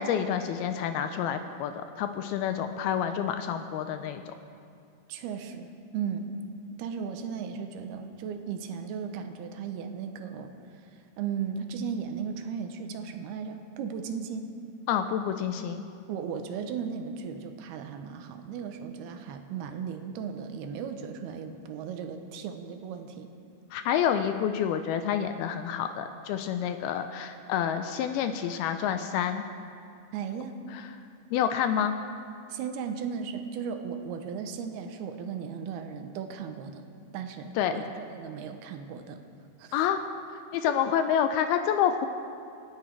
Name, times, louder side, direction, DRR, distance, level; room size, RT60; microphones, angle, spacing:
voice 1, 0.0-4.3 14.9-15.8 23.7-29.4 30.7-30.8 31.3-32.0 37.6-37.8 39.7-42.1, left 9 dB, 80° left, 8 dB, 2.4 m, -28 dB
voice 2, 5.1-6.4 6.8-10.5 11.2-14.6 16.1-23.3 30.1-30.6 32.5-36.9 37.1-39.2 39.6-39.8, right 6 dB, 80° right, 7 dB, 2.8 m, -36 dB
27.5 x 10.5 x 4.6 m, 2.4 s
omnidirectional pair, 4.7 m